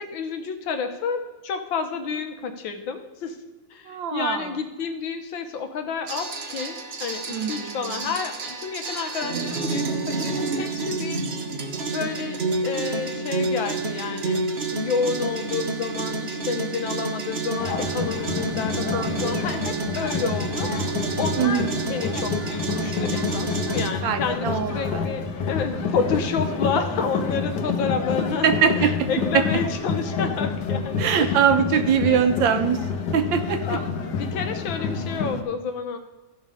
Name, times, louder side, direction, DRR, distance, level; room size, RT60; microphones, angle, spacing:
voice 1, 0.0-3.4 3.7-11.2 11.9-14.4 14.7-20.7 21.2-28.5 28.8-32.2 33.7-36.0, left 5 dB, 85° left, 7 dB, 1.8 m, -30 dB
voice 2, 3.9-4.5 7.3-8.0 18.9-19.7 21.4-21.7 24.0-25.0 25.8-25.9 28.4-28.9 31.0-32.8 33.1-33.8, right 7 dB, 75° right, 8 dB, 1.6 m, -23 dB
sound 1, 6.1-23.9, right 3 dB, 40° right, 1.0 m, -29 dB
sound 2, 17.6-35.4, left 5 dB, 65° left, 1.5 m, -28 dB
14.5 x 5.7 x 5.0 m, 1.2 s
omnidirectional pair, 2.1 m